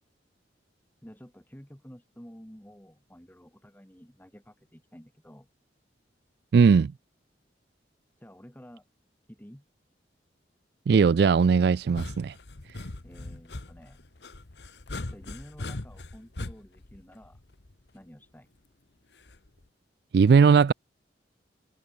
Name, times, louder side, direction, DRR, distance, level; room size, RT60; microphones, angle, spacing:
voice 1, 1.0-5.5 8.2-8.9 9.3-9.6 13.0-14.0 15.1-17.4 17.9-18.5, equal, 10° left, 2.5 m, -50 dB
voice 2, 6.5-6.9 10.9-12.3 20.1-20.7, right 5 dB, 60° right, 0.3 m, -19 dB
sound 1, 11.8-17.9 19.3-19.7, left 2 dB, 70° left, 1.3 m, -40 dB
head